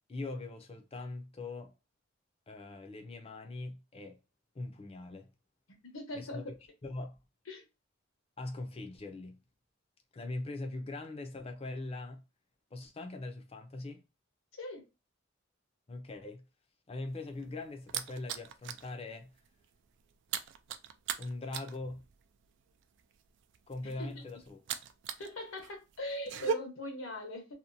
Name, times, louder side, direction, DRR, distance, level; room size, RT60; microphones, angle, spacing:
voice 1, 0.1-1.7 2.5-4.2 4.5-5.3 6.1-6.4 6.8-7.2 8.4-9.4 10.1-12.2 12.7-14.0 15.9-16.4 16.9-19.3 21.2-22.0 23.7-24.6, left 2 dB, 30° left, 0.5 m, -41 dB
voice 2, 5.9-6.5 7.5-7.6 14.6-14.8 23.8-24.2 25.2-27.5, left 1 dB, 80° left, 1.0 m, -41 dB
sound 1, 17.1-18.9 19.2-19.5 19.7-25.3 25.6-26.5, right 8 dB, 60° right, 0.3 m, -38 dB
2.8 x 2.2 x 2.5 m
head